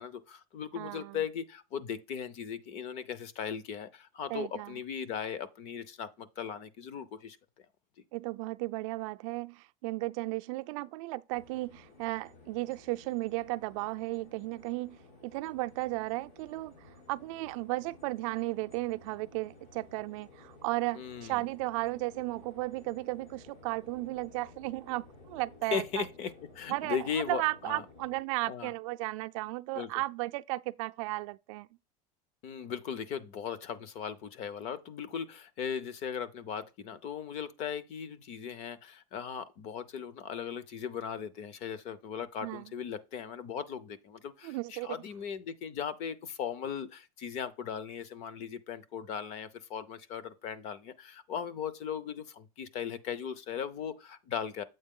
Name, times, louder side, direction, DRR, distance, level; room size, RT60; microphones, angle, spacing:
voice 1, 0.0-7.4 20.9-21.4 25.7-27.8 28.5-28.7 29.7-29.9 32.4-54.6, left 7 dB, 40° left, 0.7 m, -38 dB
voice 2, 0.7-1.2 4.3-4.8 8.1-26.0 26.7-31.7 42.4-42.7 44.4-45.0, right 21 dB, 70° right, 0.4 m, -35 dB
sound 1, 11.3-28.2, left 3 dB, 85° left, 4.0 m, -55 dB
7.9 x 4.5 x 3.6 m
cardioid pair, 175°, 17 cm